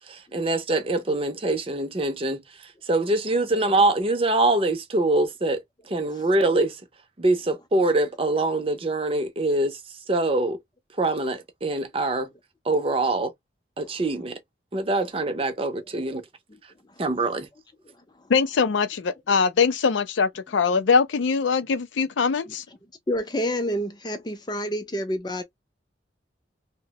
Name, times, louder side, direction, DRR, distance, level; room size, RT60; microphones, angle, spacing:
voice 1, 0.0-6.8 7.2-9.8 10.1-10.6 11.0-12.3 12.7-13.3 13.8-14.4 14.7-16.2 17.0-17.5, right 2 dB, 30° right, 0.5 m, -24 dB
voice 2, 18.3-22.6, left 5 dB, 80° left, 0.4 m, -22 dB
voice 3, 23.1-25.4, equal, 20° left, 0.5 m, -28 dB
2.8 x 2.1 x 2.8 m
head